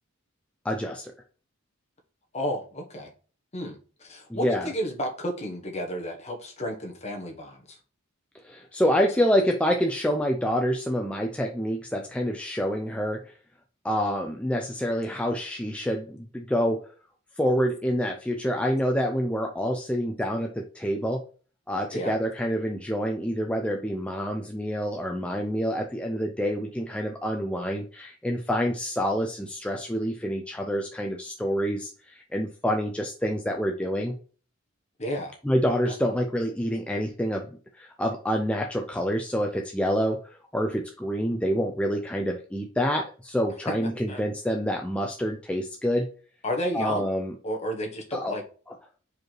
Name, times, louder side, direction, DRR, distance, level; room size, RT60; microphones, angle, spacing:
voice 1, 0.6-1.1 4.3-4.7 8.4-13.3 13.8-16.8 17.4-21.2 21.7-34.2 35.4-37.5 37.7-46.1 46.7-47.3 48.1-48.3, equal, 5° left, 2 dB, 0.5 m, -27 dB
voice 2, 2.3-3.1 3.5-7.8 21.9-22.1 35.0-35.3 35.8-35.9 44.0-44.2 46.4-47.1 47.4-48.4, equal, 30° left, 1 dB, 1.4 m, -32 dB
4.9 x 4.7 x 4.6 m, 0.40 s
head